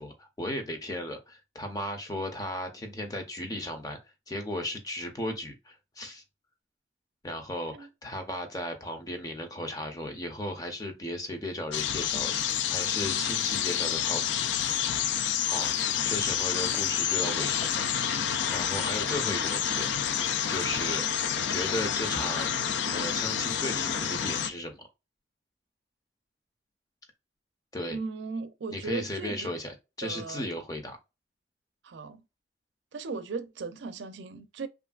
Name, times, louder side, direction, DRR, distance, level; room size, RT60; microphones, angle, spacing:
voice 1, 0.0-4.0 4.3-6.2 7.2-14.4 15.5-15.7 16.0-18.1 18.5-19.9 20.5-21.1 21.3-22.5 22.9-24.9 27.7-28.0 28.7-31.0, left 1 dB, 20° left, 0.5 m, -36 dB
sound 1, 11.7-24.5, left 9 dB, 85° left, 0.4 m, -29 dB
voice 2, 27.9-29.5 30.0-30.5 31.8-32.2 32.9-34.7, right 4 dB, 85° right, 0.4 m, -37 dB
3.1 x 2.5 x 2.3 m
head